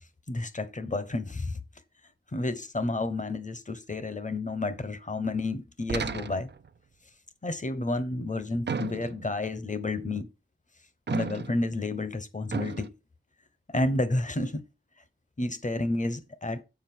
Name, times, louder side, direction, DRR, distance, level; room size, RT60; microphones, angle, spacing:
voice 1, 0.3-1.6 2.3-6.5 7.4-10.3 11.1-12.9 13.7-14.6 15.4-16.6, left 2 dB, 40° left, 1.1 m, -30 dB
sound 1, 5.9-6.7 8.7-9.4 11.1-11.7 12.5-12.9, right 6 dB, 60° right, 0.5 m, -34 dB
7.4 x 5.1 x 4.5 m
wide cardioid pair, 85°, 20 cm